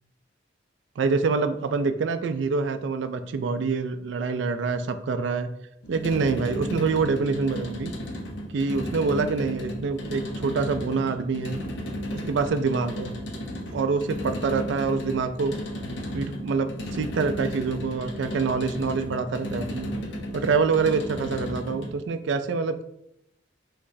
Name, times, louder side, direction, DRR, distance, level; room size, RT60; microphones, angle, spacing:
voice 1, 1.0-5.5 5.9-7.9 8.5-11.6 12.1-13.1 13.7-15.6 16.1-19.9 20.3-22.8, right 4 dB, 70° right, 9 dB, 0.3 m, -26 dB
sound 1, 5.8-22.0, equal, 70° left, 0.8 m, -34 dB
5.8 x 3.0 x 2.6 m, 0.78 s
head